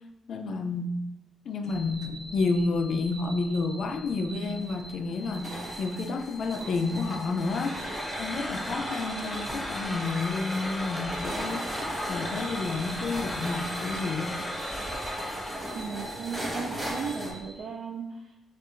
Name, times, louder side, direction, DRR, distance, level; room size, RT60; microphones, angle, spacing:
voice 1, 0.3-0.9 1.5-7.8 8.2-11.7 12.1-14.4, left 3 dB, 60° left, 6 dB, 0.4 m, -30 dB
sound 1, 1.7-17.6, right 1 dB, 45° right, 1.0 m, -45 dB
sound 2, 4.4-17.3, equal, 15° right, 1.1 m, -38 dB
sound 3, 7.4-15.8, equal, 10° left, 0.6 m, -36 dB
voice 2, 15.7-18.4, right 6 dB, 70° right, -1 dB, 0.3 m, -36 dB
6.3 x 2.4 x 2.5 m, 0.97 s
cardioid pair, 125°, 0 cm